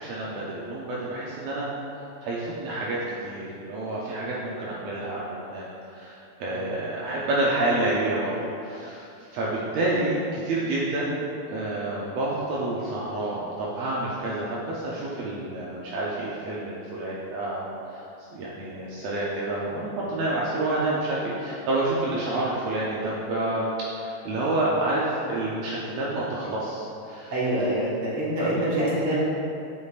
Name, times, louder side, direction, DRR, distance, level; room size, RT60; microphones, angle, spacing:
voice 1, 0.0-1.7 2.2-11.2 11.5-18.0 18.3-23.7 24.0-27.3 28.4-28.6, right 2 dB, 80° right, -6 dB, 1.5 m, -29 dB
voice 2, 27.3-29.2, right 1 dB, 50° right, -8 dB, 1.9 m, -26 dB
8.0 x 5.3 x 2.5 m, 2.6 s
omnidirectional pair, 3.8 m